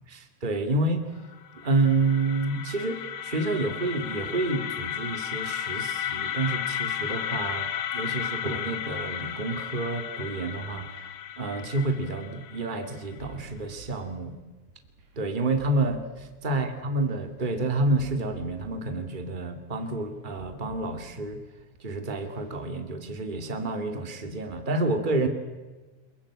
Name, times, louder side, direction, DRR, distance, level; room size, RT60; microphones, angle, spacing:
voice 1, 0.1-1.0 1.5-10.9 11.4-14.3 15.1-16.0 16.4-21.4 21.8-25.3, right 2 dB, 25° right, 6 dB, 1.1 m, -29 dB
sound 1, 1.3-13.3, left 10 dB, 65° left, 2.9 m, -34 dB
sound 2, 13.2-22.7, right 6 dB, 65° right, 5.0 m, -51 dB
28.5 x 22.0 x 8.7 m, 1.2 s
omnidirectional pair, 5.2 m